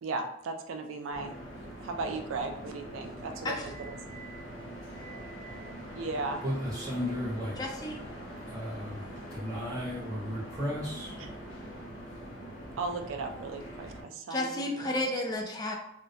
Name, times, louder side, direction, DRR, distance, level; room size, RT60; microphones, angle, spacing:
voice 1, 0.0-1.3 1.8-4.1 5.9-6.4 12.8-15.2, right 3 dB, 80° right, 5 dB, 0.4 m, -36 dB
sound 1, 1.1-14.0, equal, 80° left, 0.7 m, -43 dB
voice 2, 6.4-7.6 8.5-11.1, equal, 20° right, -8 dB, 0.7 m, -35 dB
voice 3, 7.6-8.0 14.3-15.7, left 1 dB, 20° left, 1 dB, 0.3 m, -32 dB
2.2 x 2.1 x 2.6 m, 0.79 s
head